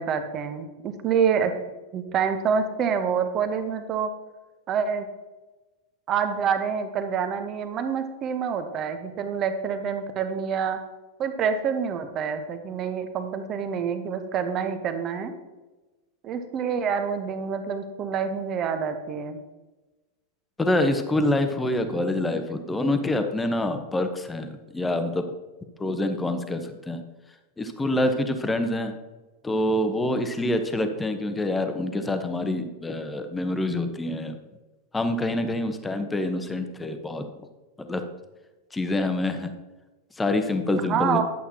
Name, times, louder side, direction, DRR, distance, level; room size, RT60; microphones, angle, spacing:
voice 1, 0.0-1.5 1.9-4.1 4.7-5.0 6.1-10.8 11.2-15.3 16.2-19.4 40.8-41.2, right 7 dB, 30° right, 8 dB, 1.0 m, -27 dB
voice 2, 20.6-25.2 25.8-27.0 27.6-28.9 29.4-34.4 34.9-37.3 37.8-38.0 38.7-39.5 40.2-41.2, left 1 dB, 10° left, 7 dB, 1.0 m, -26 dB
11.5 x 8.2 x 2.9 m, 1.2 s
figure-of-eight pair, 90°, 0 cm